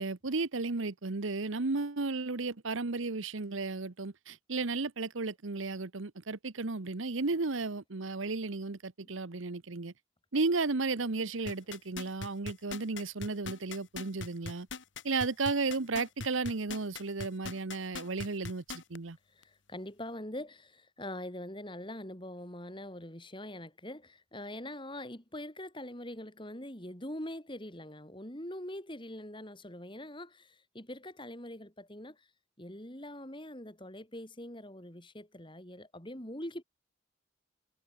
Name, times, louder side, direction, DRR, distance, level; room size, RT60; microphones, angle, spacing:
voice 1, 0.0-9.9 10.3-14.7 15.0-19.2, right 3 dB, 70° right, 1.0 m, -34 dB
sound 1, 11.5-19.0 19.4-19.5, left 4 dB, 60° left, 1.8 m, -41 dB
voice 2, 19.3-32.3 32.6-36.6, left 1 dB, 25° left, 3.6 m, -43 dB
head